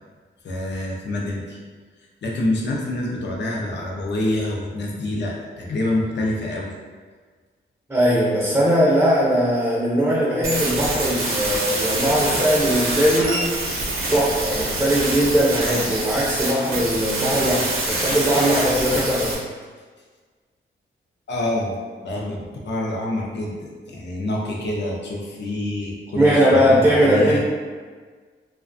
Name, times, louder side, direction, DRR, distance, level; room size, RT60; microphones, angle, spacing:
voice 1, 0.4-1.6 2.2-6.8 21.3-27.4, left 1 dB, 60° left, -2 dB, 0.5 m, -27 dB
voice 2, 7.9-13.6 14.1-19.4 26.2-27.4, equal, 10° right, -7 dB, 0.5 m, -19 dB
sound 1, 10.4-19.3, right 2 dB, 85° right, 0.6 m, -25 dB
2.4 x 2.2 x 2.5 m, 1.5 s
wide cardioid pair, 95°, 21 cm